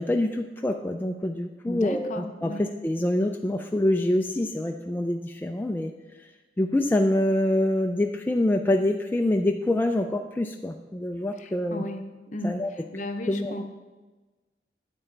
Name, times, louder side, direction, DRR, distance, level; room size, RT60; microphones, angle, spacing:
voice 1, 0.0-5.9 6.6-11.8 12.4-12.7 13.3-13.5, left 1 dB, 10° left, 3 dB, 0.4 m, -25 dB
voice 2, 1.6-2.6 11.4-12.0 12.3-12.6 12.9-13.7, left 1 dB, 45° left, 6 dB, 0.7 m, -34 dB
9.1 x 8.4 x 3.4 m, 1.2 s
head